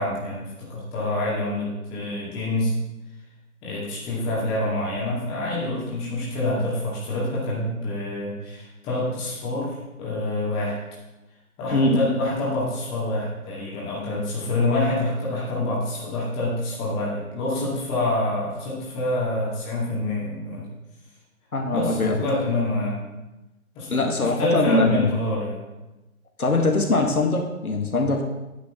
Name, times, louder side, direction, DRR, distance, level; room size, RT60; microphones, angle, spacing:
voice 1, 0.0-2.7 3.6-9.7 10.0-10.8 11.6-20.6 21.7-23.0 23.7-25.6, left 2 dB, 15° left, -6 dB, 2.2 m, -27 dB
voice 2, 11.7-12.1 21.5-22.2 23.9-25.1 26.4-28.2, left 2 dB, 75° left, 1 dB, 1.7 m, -22 dB
9.8 x 9.4 x 3.7 m, 1.0 s
figure-of-eight pair, 140°, 44 cm